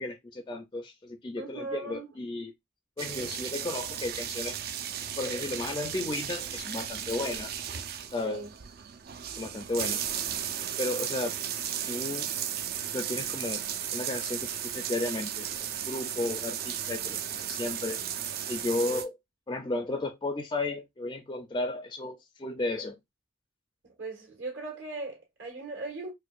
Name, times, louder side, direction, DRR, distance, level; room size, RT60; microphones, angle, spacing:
voice 1, 0.0-2.5 3.0-4.6 5.2-7.5 8.1-8.4 9.4-10.0 10.8-11.3 11.9-12.3 12.9-13.6 13.9-18.0 18.5-19.1 19.5-23.0, left 2 dB, 20° left, 0.4 m, -34 dB
voice 2, 1.4-2.1 8.2-8.5 23.8-26.1, right 3 dB, 70° right, 1.6 m, -38 dB
sound 1, 3.0-19.0, right 9 dB, 50° right, 0.4 m, -35 dB
4.5 x 2.2 x 2.3 m
head